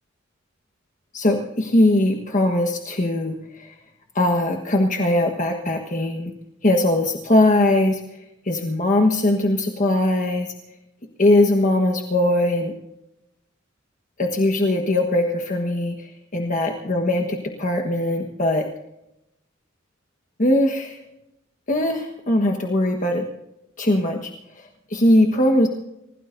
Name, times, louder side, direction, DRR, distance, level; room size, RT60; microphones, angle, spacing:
voice 1, 1.1-3.7 4.1-6.3 6.6-8.0 8.4-10.5 11.2-12.7 14.2-18.7 20.4-21.0 21.7-23.2 23.8-24.3 24.9-25.7, left 1 dB, 40° left, 2 dB, 1.4 m, -20 dB
29.5 x 17.0 x 2.7 m, 0.88 s
head